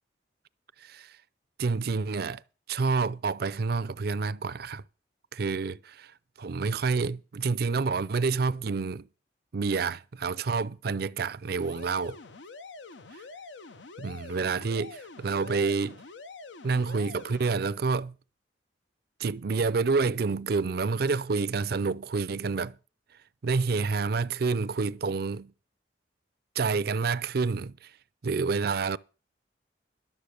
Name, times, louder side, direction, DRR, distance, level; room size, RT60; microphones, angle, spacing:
voice 1, 0.8-1.1 1.6-2.4 2.7-4.8 5.3-6.1 6.4-9.1 9.5-12.2 14.0-16.0 16.6-18.1 19.2-22.8 23.4-25.5 26.6-27.9 28.2-29.0, right 4 dB, 55° right, 0.5 m, -28 dB
sound 1, 11.6-17.4, left 3 dB, 85° left, 0.7 m, -46 dB
12.0 x 7.4 x 6.6 m
head